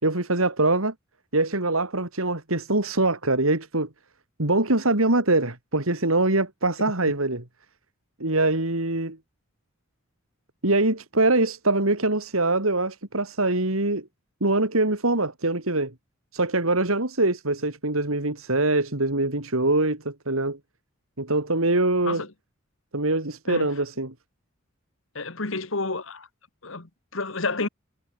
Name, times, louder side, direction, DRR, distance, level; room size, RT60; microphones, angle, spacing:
voice 1, 0.0-0.9 1.3-3.9 4.4-7.4 8.2-9.2 10.6-14.1 14.4-15.9 16.3-20.6 21.2-22.2 22.9-24.1, right 2 dB, 80° right, 3.4 m, -23 dB
voice 2, 25.2-26.3 26.6-27.7, left 3 dB, 65° left, 1.9 m, -30 dB
head